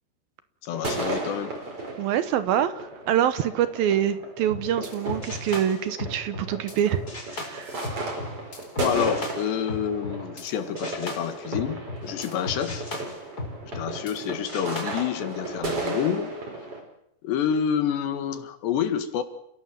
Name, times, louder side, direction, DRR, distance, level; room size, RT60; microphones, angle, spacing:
voice 1, 0.6-1.5 8.8-12.9 13.6-16.3 17.2-19.2, left 8 dB, 80° left, 10 dB, 4.0 m, -28 dB
sound 1, 0.7-16.8, right 2 dB, 35° right, 5.4 m, -35 dB
voice 2, 2.0-7.0 7.3-7.8, right 10 dB, 70° right, 13 dB, 2.5 m, -25 dB
sound 2, 4.4-10.5 10.8-14.2 14.5-14.8, left 2 dB, 20° left, 4.4 m, -36 dB
29.5 x 16.5 x 7.6 m, 0.76 s
omnidirectional pair, 4.9 m